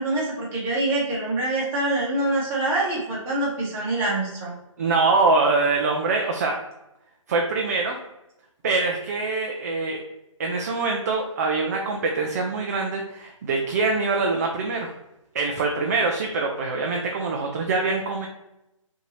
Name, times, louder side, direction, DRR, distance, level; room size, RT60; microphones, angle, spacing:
voice 1, 0.0-4.5, right 2 dB, 15° right, -5 dB, 1.0 m, -25 dB
voice 2, 4.8-6.5 7.3-8.0 8.6-10.0 10.4-14.9 15.3-18.3, right 3 dB, 30° right, 1 dB, 0.4 m, -24 dB
5.2 x 2.7 x 3.0 m, 0.89 s
hypercardioid pair, 150°, 17 cm